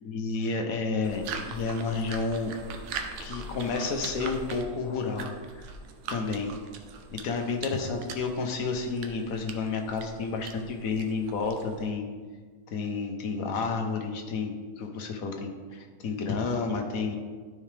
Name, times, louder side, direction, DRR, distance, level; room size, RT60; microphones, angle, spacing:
voice 1, 0.0-2.5 3.2-5.6 6.1-6.5 7.2-12.1 12.7-17.2, left 4 dB, 65° left, 3 dB, 1.2 m, -31 dB
sound 1, 1.0-11.9, right 4 dB, 85° right, 1.3 m, -41 dB
12.0 x 4.6 x 3.4 m, 1.5 s
omnidirectional pair, 1.7 m